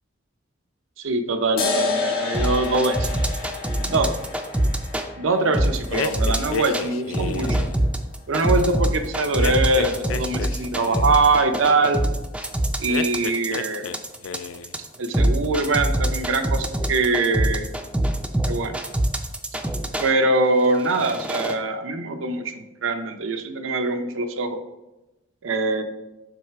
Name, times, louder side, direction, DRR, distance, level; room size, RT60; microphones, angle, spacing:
voice 1, 1.0-3.1 3.8-4.2 5.2-7.6 8.3-12.0 12.8-13.8 15.0-17.7 18.5-18.8 20.0-24.6 25.4-25.8, right 3 dB, 80° right, 7 dB, 0.6 m, -23 dB
sound 1, 1.6-8.5, left 4 dB, 50° left, 1.5 m, -31 dB
sound 2, 2.3-5.1 5.5-6.9 7.1-20.1 20.7-21.5, right 1 dB, 5° right, 0.4 m, -24 dB
sound 3, 5.9-7.8 9.4-11.2 12.9-14.0 14.2-14.8, left 7 dB, 80° left, 0.4 m, -32 dB
7.6 x 3.2 x 4.7 m, 1.0 s
head